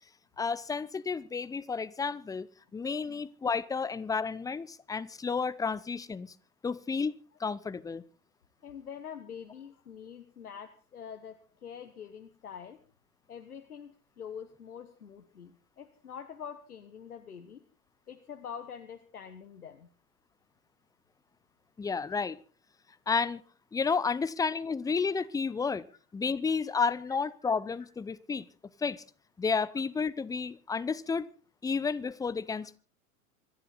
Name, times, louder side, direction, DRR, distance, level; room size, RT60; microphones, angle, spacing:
voice 1, 0.4-2.5 2.7-6.3 6.6-7.1 7.4-8.0 21.8-22.4 23.1-23.4 23.7-25.9 26.1-28.5 28.8-29.0 29.4-31.3 31.6-32.8, left 5 dB, 10° left, 0.7 m, -31 dB
voice 2, 8.6-12.8 13.3-17.6 18.1-19.9 27.4-27.5, left 7 dB, 80° left, 1.4 m, -45 dB
26.0 x 11.0 x 4.1 m
figure-of-eight pair, 90°, 44 cm